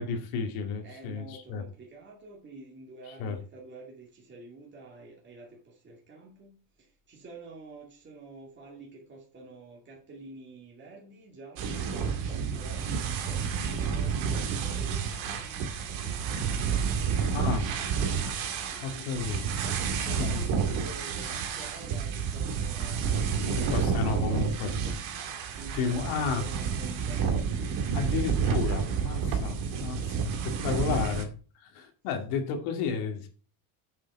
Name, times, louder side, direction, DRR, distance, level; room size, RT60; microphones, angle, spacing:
voice 1, 0.0-1.6 3.2-3.4 17.3-17.7 18.8-19.4 20.1-20.4 23.6-24.7 25.7-26.5 27.9-30.2 30.4-31.3 31.7-33.3, left 5 dB, 85° left, 2.5 m, -32 dB
voice 2, 0.8-12.0 12.3-17.4 18.7-19.1 19.6-25.0 25.6-27.2 30.2-30.9 32.3-32.4, right 3 dB, 25° right, 2.5 m, -48 dB
sound 1, 11.6-31.2, right 6 dB, 70° right, 2.2 m, -30 dB
7.6 x 7.0 x 5.4 m
cardioid pair, 150°, 47 cm